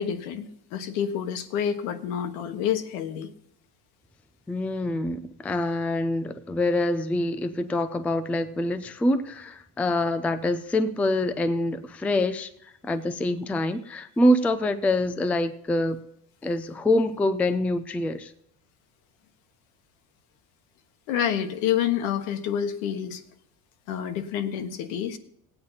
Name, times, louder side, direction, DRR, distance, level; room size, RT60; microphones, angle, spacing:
voice 1, 0.0-3.3 21.1-23.2 23.9-25.2, left 9 dB, 80° left, 8 dB, 1.4 m, -28 dB
voice 2, 4.5-16.0 16.4-18.3, left 1 dB, 5° left, 10 dB, 0.3 m, -25 dB
17.5 x 8.7 x 4.1 m, 0.74 s
cardioid pair, 135°, 42 cm